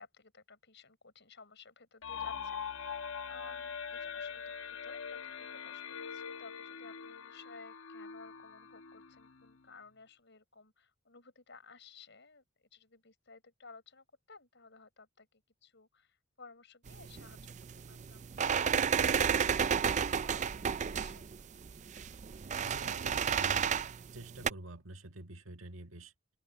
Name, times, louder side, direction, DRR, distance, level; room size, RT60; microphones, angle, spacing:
voice 1, 0.0-21.2, left 4 dB, 60° left, 6.9 m, -57 dB
sound 1, 2.0-9.6, left 7 dB, 85° left, 1.1 m, -43 dB
sound 2, 16.9-24.5, right 7 dB, 35° right, 0.4 m, -32 dB
voice 2, 22.6-23.7 24.1-26.1, right 2 dB, 85° right, 1.9 m, -47 dB
open air
head